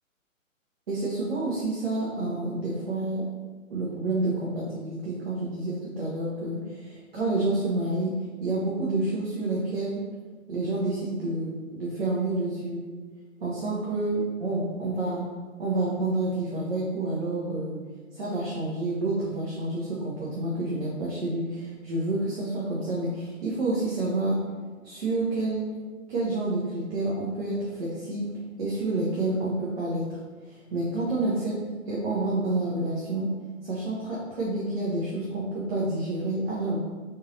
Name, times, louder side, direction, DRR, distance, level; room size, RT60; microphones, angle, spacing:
voice 1, 0.9-3.2 3.7-8.1 8.4-10.0 10.5-12.8 13.4-15.3 15.6-17.8 18.1-24.4 24.8-25.7 26.1-28.3 28.6-30.2 30.4-31.6 31.9-33.3 33.6-36.8, right 2 dB, 45° right, -6 dB, 0.9 m, -29 dB
3.9 x 2.6 x 3.9 m, 1.4 s
figure-of-eight pair, 130°, 41 cm